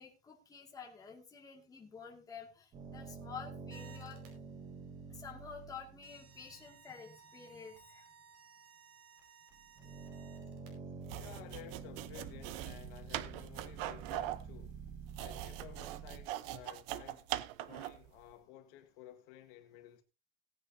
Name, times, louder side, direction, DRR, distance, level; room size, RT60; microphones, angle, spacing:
voice 1, 0.0-4.2 5.1-8.0, left 6 dB, 10° left, 2.1 m, -50 dB
sound 1, 2.7-6.8 9.5-16.3, right 5 dB, 25° right, 1.5 m, -48 dB
sound 2, 3.7-4.3 5.0-5.4 6.0-10.7 12.3-12.4 12.6-12.7 13.0-16.5, right 7 dB, 75° right, 5.1 m, -61 dB
vegetables on chopping board - taglio verdure su tagliere, 11.0-18.1, right 14 dB, 60° right, 0.9 m, -42 dB
voice 2, 11.1-14.8 15.1-17.3 17.6-20.0, left 12 dB, 60° left, 1.8 m, -54 dB
18.0 x 9.5 x 2.7 m
cardioid pair, 180°, 32 cm